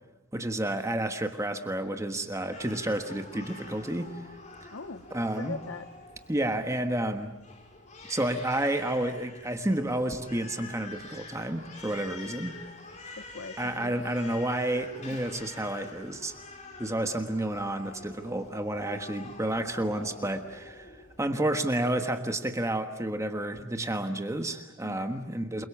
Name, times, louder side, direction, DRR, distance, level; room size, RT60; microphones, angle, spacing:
voice 1, 0.3-4.2 4.6-4.7 5.1-5.6 6.3-7.3 8.1-12.6 13.6-16.3 16.8-20.9 21.2-25.6, right 1 dB, 15° right, 6 dB, 1.4 m, -30 dB
Crying sobbing, 2.5-21.3, left 3 dB, 40° left, 5.2 m, -46 dB
voice 2, 4.7-5.9 13.2-13.9 24.8-25.1, left 3 dB, 75° left, 10 dB, 1.0 m, -41 dB
29.0 x 22.5 x 7.3 m, 1.1 s
head